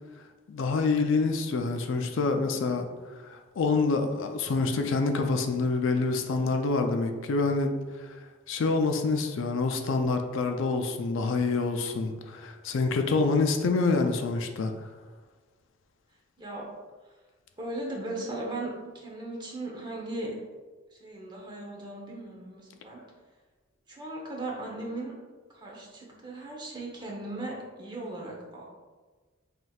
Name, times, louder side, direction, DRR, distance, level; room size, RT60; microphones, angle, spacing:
voice 1, 0.5-2.8 3.3-7.8 8.5-14.7, left 3 dB, 65° left, 5 dB, 0.4 m, -26 dB
voice 2, 16.4-16.7 17.6-20.3 21.0-23.0 23.9-25.1 25.5-28.6, right 2 dB, 20° right, -2 dB, 0.8 m, -37 dB
5.7 x 3.1 x 2.3 m, 1.3 s
head